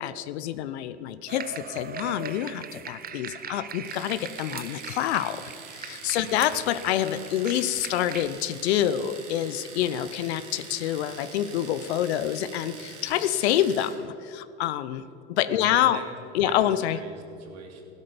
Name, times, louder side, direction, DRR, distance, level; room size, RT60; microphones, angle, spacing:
voice 1, 0.0-5.4 5.7-16.0 16.3-17.0, left 11 dB, 70° left, 13 dB, 0.8 m, -27 dB
sound 1, 1.3-8.3, right 6 dB, 25° right, 1.0 m, -40 dB
Domestic sounds home sounds, 3.8-14.0, right 5 dB, 75° right, 2.7 m, -44 dB
voice 2, 6.2-6.5 15.6-16.0 16.4-16.6 16.9-17.8, right 5 dB, 50° right, 2 dB, 3.0 m, -41 dB
15.5 x 12.5 x 5.2 m, 2.8 s
hypercardioid pair, 85°, 34 cm